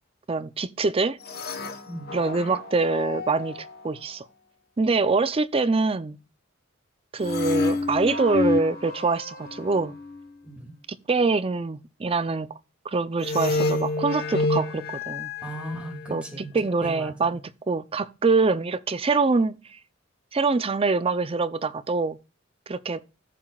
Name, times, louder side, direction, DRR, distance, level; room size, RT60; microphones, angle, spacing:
voice 1, 0.3-1.2 2.1-4.3 4.8-6.2 7.1-9.9 10.9-12.5 12.8-15.3 16.1-16.2 16.5-17.4 17.7-19.8 20.3-22.2 22.7-23.0, right 4 dB, 30° right, 0.5 m, -24 dB
sound 1, 1.2-3.8 7.2-10.3 13.2-16.4, left 3 dB, 50° left, 1.1 m, -29 dB
voice 2, 10.4-10.7 15.4-16.5 16.8-17.3, right 1 dB, 5° right, 2.3 m, -37 dB
14.5 x 5.8 x 2.4 m
head